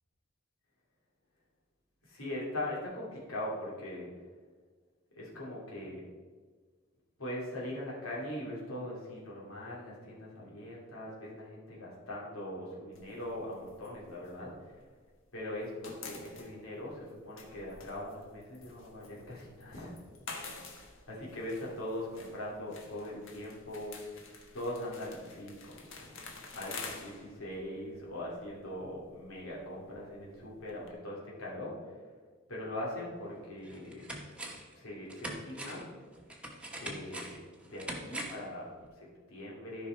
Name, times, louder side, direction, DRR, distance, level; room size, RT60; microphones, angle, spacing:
voice 1, 2.0-4.1 5.1-6.0 7.2-14.8 15.3-19.9 21.1-26.2 26.5-31.9 32.5-34.1 34.8-35.8 36.8-37.4 37.7-39.9, left 1 dB, 90° left, -4 dB, 2.9 m, -41 dB
sound 1, 12.9-15.2 15.5-30.9, left 4 dB, 65° left, 1.4 m, -49 dB
sound 2, 33.1-33.2 33.7-34.7 35.1-38.5 38.8-38.9, right 1 dB, 5° right, 1.2 m, -42 dB
13.5 x 5.4 x 4.6 m, 1.5 s
head